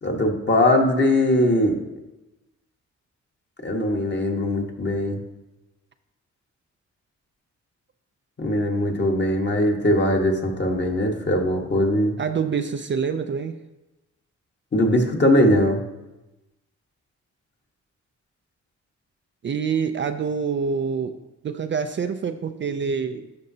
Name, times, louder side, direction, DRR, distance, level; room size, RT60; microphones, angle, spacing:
voice 1, 0.0-1.8 3.6-5.2 8.4-12.1 14.7-15.8, left 1 dB, 35° left, 2 dB, 1.4 m, -20 dB
voice 2, 12.2-13.6 19.4-21.2 21.4-23.3, right 6 dB, 40° right, 8 dB, 0.4 m, -26 dB
12.0 x 5.2 x 2.8 m, 1.0 s
cardioid pair, 80°, 30 cm